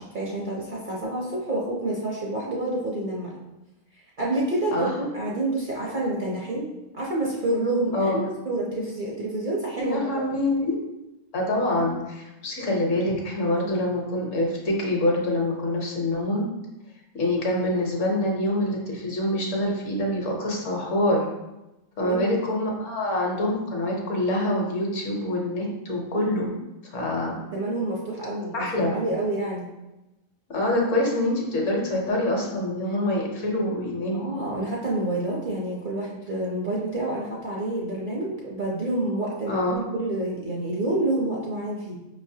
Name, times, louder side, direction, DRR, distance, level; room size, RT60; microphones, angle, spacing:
voice 1, 0.0-3.3 4.2-8.2 8.4-10.0 22.0-22.3 27.5-29.6 34.1-42.0, right 2 dB, 50° right, -4 dB, 0.7 m, -28 dB
voice 2, 9.8-10.8 11.3-16.4 17.1-21.2 22.0-26.5 26.9-27.4 28.5-28.9 30.5-34.2 39.5-39.8, left 1 dB, 65° left, -1 dB, 1.2 m, -25 dB
5.3 x 3.1 x 2.7 m, 1.0 s
omnidirectional pair, 1.4 m